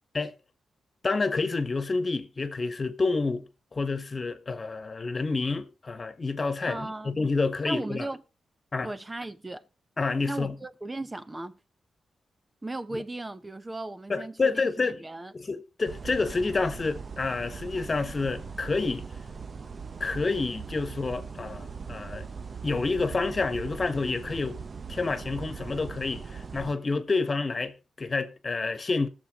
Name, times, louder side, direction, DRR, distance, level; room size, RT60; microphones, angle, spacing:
voice 1, 1.0-8.1 8.7-8.9 10.0-10.5 14.1-15.0 15.3-19.1 20.0-22.3 22.6-24.6 24.9-29.1, left 3 dB, 40° left, 1.5 m, -29 dB
voice 2, 6.7-7.2 7.6-8.2 8.8-9.6 10.3-11.6 12.6-15.3, right 2 dB, 20° right, 1.0 m, -36 dB
sound 1, 15.8-26.7, right 5 dB, 45° right, 0.8 m, -40 dB
20.0 x 7.2 x 3.8 m
cardioid pair, 75°, 0 cm